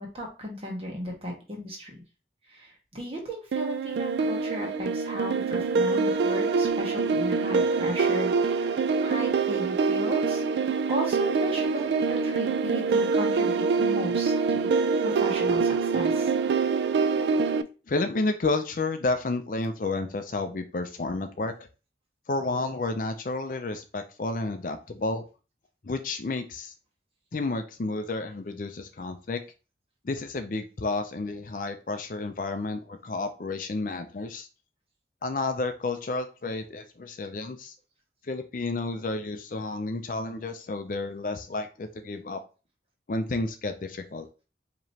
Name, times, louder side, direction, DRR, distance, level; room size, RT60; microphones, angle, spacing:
voice 1, 0.0-2.0 2.5-10.4 10.9-14.7 15.0-16.3, equal, 30° right, 0 dB, 1.3 m, -35 dB
sound 1, 3.5-17.6, right 4 dB, 70° right, 0.3 m, -25 dB
voice 2, 17.9-21.5 22.3-25.3 25.8-26.7 27.3-29.4 30.0-34.5 35.2-37.7 38.2-42.4 43.1-44.3, left 3 dB, 45° left, 7 dB, 0.5 m, -31 dB
4.9 x 3.0 x 2.8 m, 0.33 s
head